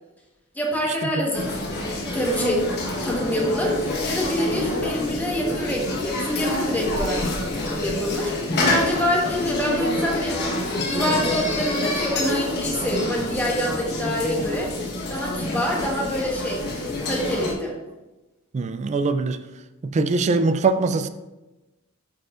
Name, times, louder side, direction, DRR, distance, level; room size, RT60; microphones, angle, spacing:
voice 1, 0.5-2.7 3.0-7.3 7.5-10.6 10.9-14.7 15.1-16.6 17.0-17.7, equal, 10° left, 1.2 m, -26 dB
sound 1, 1.3-17.5, left 2 dB, 50° left, 1.2 m, -27 dB
voice 2, 18.5-19.4 19.8-21.1, right 3 dB, 30° right, 0.3 m, -22 dB
9.2 x 4.6 x 2.5 m
head